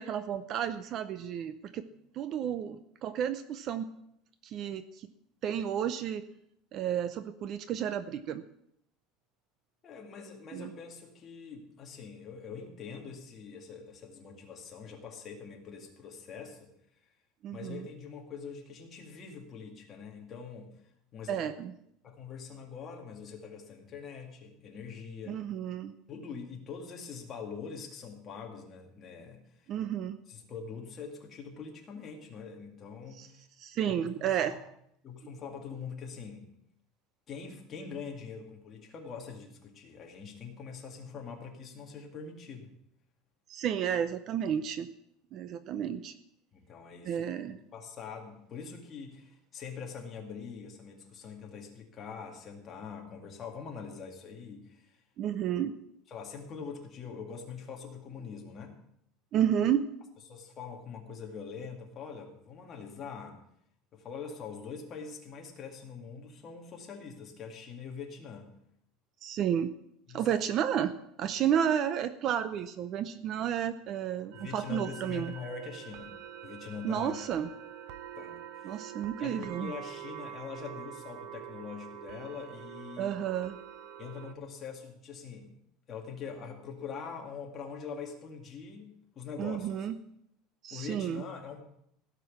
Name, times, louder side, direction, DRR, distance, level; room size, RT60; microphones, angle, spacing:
voice 1, 0.0-1.8 2.1-3.9 4.4-5.1 5.4-6.2 6.7-8.4 10.5-10.7 17.4-17.9 21.3-21.7 25.3-25.9 29.7-30.2 33.2-33.3 33.6-34.5 43.5-44.9 45.3-46.1 47.0-47.6 55.2-55.7 59.3-59.8 69.2-69.7 70.1-70.9 71.2-75.3 76.8-77.5 78.6-79.7 83.0-83.6 89.4-89.9 90.6-91.2, right 9 dB, 35° right, 13 dB, 0.6 m, -31 dB
voice 2, 9.8-16.7 17.5-20.7 21.1-21.5 22.0-25.4 26.1-29.7 30.3-33.4 33.9-34.6 35.0-36.5 37.3-42.7 46.5-55.0 56.1-58.7 60.3-63.4 63.9-68.5 70.1-70.3 74.3-76.1 76.4-77.2 78.2-78.8 79.2-83.2 84.0-85.5 85.9-89.9 90.7-91.6, left 6 dB, 25° left, 1 dB, 2.1 m, -44 dB
sound 1, 74.3-84.3, right 9 dB, 60° right, 0.9 m, -45 dB
16.5 x 6.1 x 8.5 m, 0.74 s
cardioid pair, 175°, 0 cm